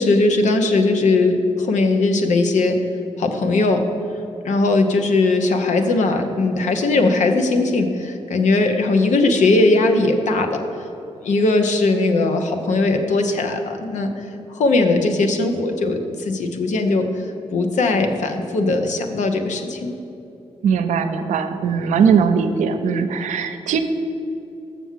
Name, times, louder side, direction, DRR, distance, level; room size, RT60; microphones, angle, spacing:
voice 1, 0.0-2.8 3.2-3.8 4.4-10.6 11.2-17.0 17.5-20.0, left 2 dB, 80° left, 5 dB, 0.8 m, -19 dB
voice 2, 20.6-23.8, right 6 dB, 90° right, 8 dB, 0.5 m, -19 dB
7.0 x 6.1 x 7.3 m, 2.8 s
cardioid pair, 50°, 12 cm